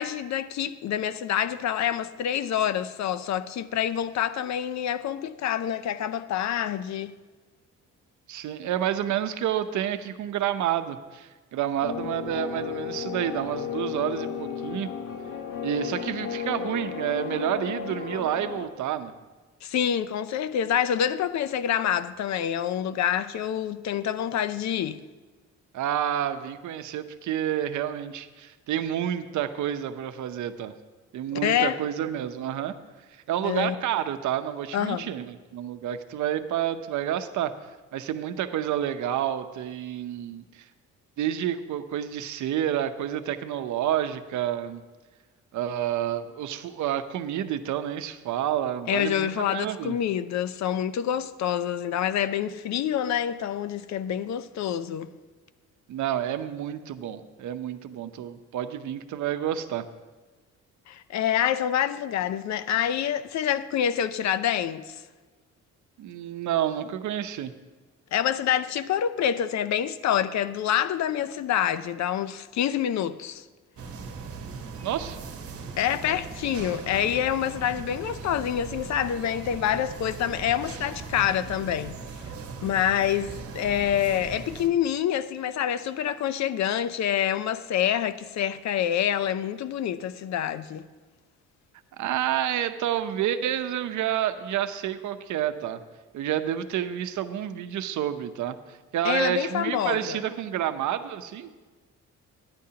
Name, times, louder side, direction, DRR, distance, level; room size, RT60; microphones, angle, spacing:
voice 1, 0.0-7.1 19.6-25.0 31.4-31.8 33.4-33.8 34.7-35.1 48.9-55.1 60.9-65.0 68.1-73.4 75.8-82.0 82.6-90.8 99.0-100.2, left 10 dB, 65° left, 0.6 m, -27 dB
voice 2, 8.3-14.9 15.6-19.1 25.7-30.7 31.1-32.7 33.3-37.5 37.9-40.7 41.2-44.8 45.5-50.0 55.9-59.8 66.0-67.5 74.8-75.2 92.0-95.8 96.1-101.5, right 10 dB, 75° right, 0.7 m, -29 dB
sound 1, 11.8-18.7, left 8 dB, 90° left, 1.0 m, -34 dB
sound 2, 73.8-84.7, right 5 dB, 50° right, 1.2 m, -39 dB
14.5 x 10.5 x 2.8 m
cardioid pair, 90°, 30 cm